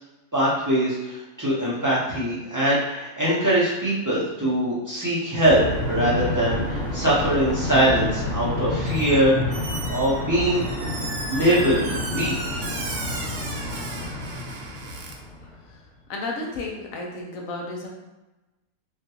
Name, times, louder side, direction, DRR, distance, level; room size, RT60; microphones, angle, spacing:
voice 1, 0.3-9.5 9.8-10.7 11.3-12.6, right 1 dB, 25° right, -9 dB, 0.4 m, -22 dB
sound 1, 5.4-15.7, left 2 dB, ahead, 0.8 m, -29 dB
Squeak, 8.9-9.2 9.5-15.1, right 3 dB, 75° right, 0.6 m, -35 dB
voice 2, 16.1-17.9, left 2 dB, 70° left, -1 dB, 0.9 m, -32 dB
3.6 x 2.4 x 2.8 m, 1.0 s
omnidirectional pair, 1.6 m